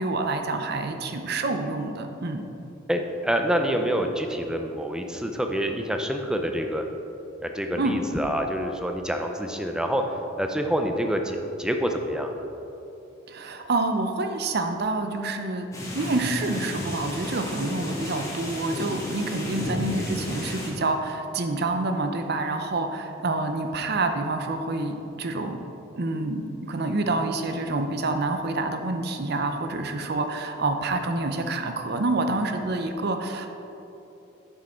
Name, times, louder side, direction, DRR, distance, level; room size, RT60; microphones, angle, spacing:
voice 1, 0.0-2.5 7.8-8.0 13.3-15.7 15.9-25.6 26.0-33.5, right 2 dB, 55° right, 6 dB, 0.6 m, -27 dB
voice 2, 2.9-6.8 7.4-10.0 10.4-12.4, equal, 5° right, 4 dB, 0.5 m, -27 dB
sound 1, 15.7-20.7, left 1 dB, 15° left, 1.2 m, -32 dB
7.9 x 6.3 x 4.4 m, 3.0 s
head